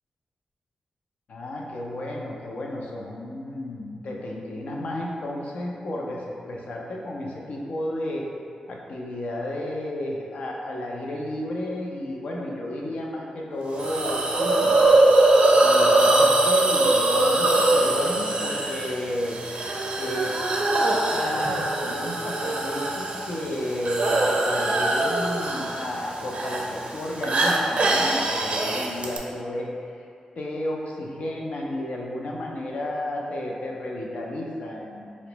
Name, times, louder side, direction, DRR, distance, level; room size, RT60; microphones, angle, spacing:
voice 1, 1.3-8.3 8.7-15.0 15.6-19.4 20.0-20.4 21.1-29.7 29.9-30.1 30.4-35.2, left 1 dB, 70° left, -2 dB, 0.5 m, -32 dB
Hiss, 13.8-29.2, right 2 dB, 55° right, 0.4 m, -22 dB
4.2 x 2.0 x 2.9 m, 2.4 s
cardioid pair, 75°, 2 cm